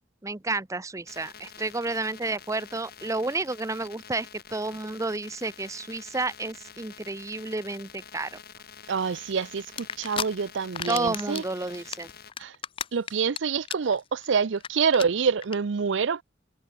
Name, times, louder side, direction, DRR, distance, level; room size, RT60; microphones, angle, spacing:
voice 1, 0.2-8.4 10.9-12.1, right 3 dB, 15° right, 0.6 m, -31 dB
sound 1, 1.1-12.3, left 7 dB, 55° left, 5.4 m, -48 dB
voice 2, 8.9-11.4 12.4-12.5 12.9-16.2, right 6 dB, 80° right, 0.6 m, -26 dB
sound 2, 9.8-10.3 10.6-11.4 11.7-13.4 13.7-14.0 14.2-14.3 14.6-14.7 14.9-15.1 15.4-15.6, left 8 dB, 30° left, 0.5 m, -32 dB
head